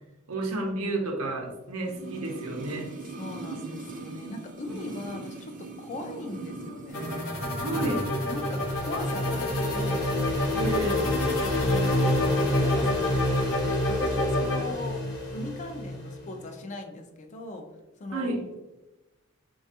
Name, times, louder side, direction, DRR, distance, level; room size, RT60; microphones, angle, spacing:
voice 1, 0.3-2.9 7.6-8.1 10.6-11.1 18.1-18.4, right 2 dB, 80° right, 1 dB, 0.6 m, -31 dB
sound 1, 1.8-7.3 7.6-7.7, right 3 dB, 40° right, 0.5 m, -40 dB
voice 2, 3.1-7.0 8.3-9.4 9.7-10.1 11.6-13.1 13.8-15.0 15.3-17.7 18.0-18.3, left 2 dB, 35° left, 5 dB, 0.4 m, -39 dB
sound 2, 6.9-14.6, left 1 dB, 75° left, 0.7 m, -31 dB
sound 3, 7.8-16.4, left 1 dB, 55° left, 0.9 m, -28 dB
3.2 x 2.3 x 2.7 m, 1.0 s
head